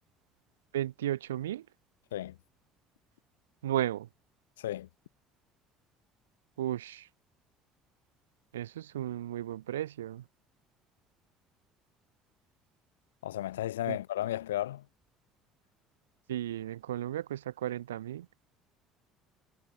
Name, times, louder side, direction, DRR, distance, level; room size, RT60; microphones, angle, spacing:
voice 1, 0.7-1.7 3.6-4.1 6.6-7.1 8.5-10.2 13.9-14.0 16.3-18.3, right 12 dB, 75° right, 0.8 m, -34 dB
voice 2, 4.6-4.9 13.2-14.9, left 13 dB, 75° left, 0.8 m, -34 dB
figure-of-eight pair, 55°, 0 cm